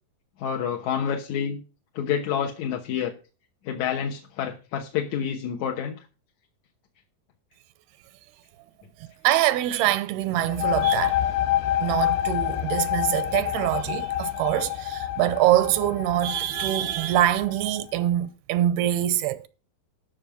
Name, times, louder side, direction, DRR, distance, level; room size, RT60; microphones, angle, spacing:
voice 1, 0.4-1.6 2.0-3.1 3.7-6.0, left 8 dB, 65° left, 2.0 m, -28 dB
voice 2, 9.2-11.2 11.8-19.5, right 13 dB, 85° right, 2.7 m, -24 dB
sound 1, 10.4-17.8, left 12 dB, 85° left, 2.7 m, -27 dB
13.0 x 5.3 x 5.9 m
omnidirectional pair, 4.5 m